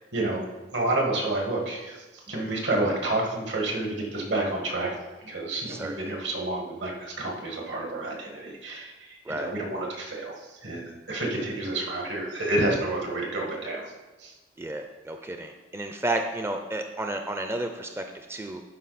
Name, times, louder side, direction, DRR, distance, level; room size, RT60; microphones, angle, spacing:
voice 1, 0.1-0.4 0.7-4.9 5.2-10.3 10.6-13.9 14.2-14.3, right 2 dB, 75° right, 0 dB, 1.9 m, -29 dB
voice 2, 5.6-6.1 9.3-9.5 14.6-18.6, right 1 dB, 15° right, 5 dB, 0.4 m, -32 dB
11.5 x 5.0 x 4.2 m, 1.2 s
head